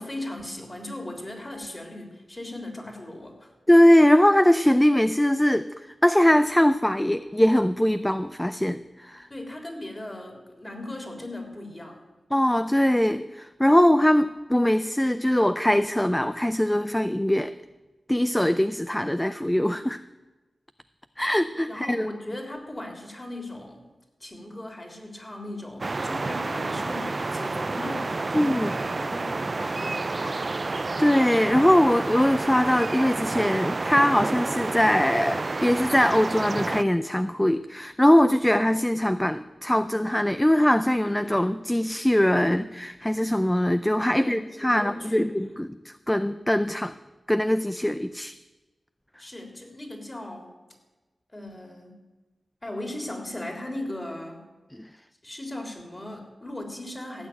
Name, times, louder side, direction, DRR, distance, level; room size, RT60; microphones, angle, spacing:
voice 1, 0.0-3.5 9.3-12.0 21.7-23.9 24.2-30.4 44.1-45.3 49.2-50.5 51.3-52.0 52.6-54.5 55.2-57.3, left 1 dB, 25° left, 3 dB, 3.5 m, -38 dB
voice 2, 3.7-5.7 6.0-9.3 12.3-17.5 18.1-20.0 21.2-22.1 28.3-28.7 31.0-46.9 47.3-48.3 54.7-54.9, left 1 dB, 10° left, 12 dB, 0.5 m, -21 dB
sound 1, 25.8-36.8, right 3 dB, 45° right, 0.4 m, -29 dB
16.0 x 6.3 x 9.3 m, 1.2 s
cardioid pair, 45°, 0 cm